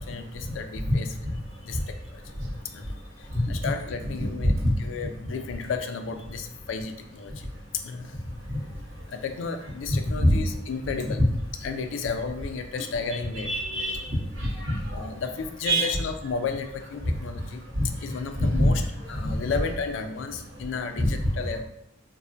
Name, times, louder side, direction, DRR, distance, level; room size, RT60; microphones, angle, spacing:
voice 1, 0.1-1.1 1.6-2.2 2.7-4.5 4.8-7.5 7.7-8.1 9.1-11.2 11.6-13.5 14.9-17.6 18.0-21.6, left 5 dB, 70° left, 7 dB, 0.3 m, -33 dB
voice 2, 9.9-10.3 13.4-14.0 14.4-15.1 15.6-15.9 17.8-17.9 18.3-18.7 19.2-19.3 21.0-21.1, equal, 90° right, -2 dB, 0.9 m, -24 dB
3.2 x 2.1 x 2.6 m, 0.78 s
head